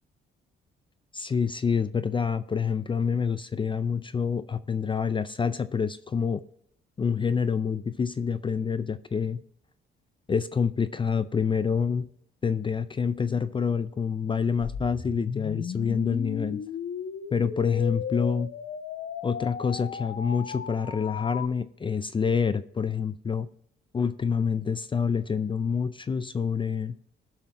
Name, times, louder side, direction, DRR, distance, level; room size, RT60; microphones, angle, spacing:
voice 1, 1.1-6.4 7.0-9.4 10.3-12.1 12.4-16.6 17.3-18.5 19.2-23.5 23.9-26.9, left 6 dB, 25° left, 0.4 m, -27 dB
sound 1, 14.6-21.5, left 7 dB, 65° left, 1.1 m, -35 dB
16.5 x 5.7 x 3.0 m
cardioid pair, 90°, 20 cm